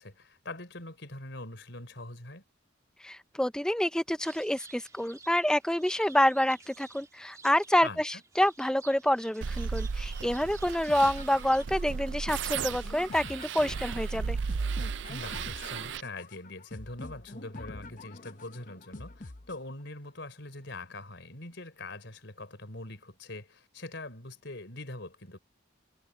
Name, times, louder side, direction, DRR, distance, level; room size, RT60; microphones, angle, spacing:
voice 1, 0.0-2.4 7.8-8.2 15.1-25.4, left 2 dB, 65° left, 4.4 m, -43 dB
voice 2, 3.0-14.4, left 1 dB, 5° left, 0.5 m, -27 dB
sound 1, 4.2-11.9, right 4 dB, 15° right, 2.1 m, -53 dB
sound 2, 9.4-16.0, right 5 dB, 65° right, 0.4 m, -35 dB
sound 3, 10.9-19.9, left 2 dB, 40° left, 0.8 m, -46 dB
head